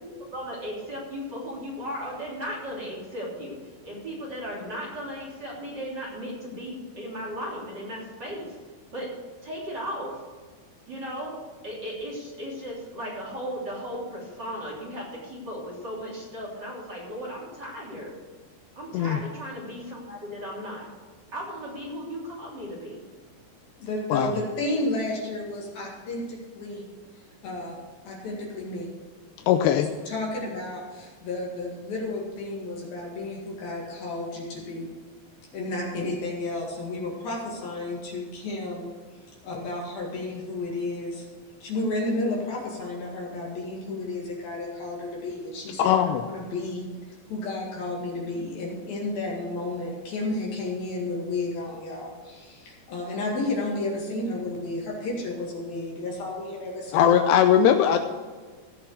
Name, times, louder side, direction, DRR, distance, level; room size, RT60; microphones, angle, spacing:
voice 1, 0.0-8.6 8.9-9.2 9.4-10.2 10.9-18.1 18.7-20.9 21.3-23.0, equal, 25° right, -4 dB, 3.3 m, -36 dB
voice 2, 23.8-26.9 27.4-28.9 29.6-29.7 30.1-34.9 35.5-38.9 39.4-41.3 41.6-46.0 46.2-57.2, left 2 dB, 60° left, -3 dB, 3.7 m, -32 dB
voice 3, 29.5-29.9 45.8-46.2 56.9-58.0, left 9 dB, 85° left, 7 dB, 2.6 m, -19 dB
17.0 x 6.1 x 6.5 m, 1.4 s
omnidirectional pair, 5.0 m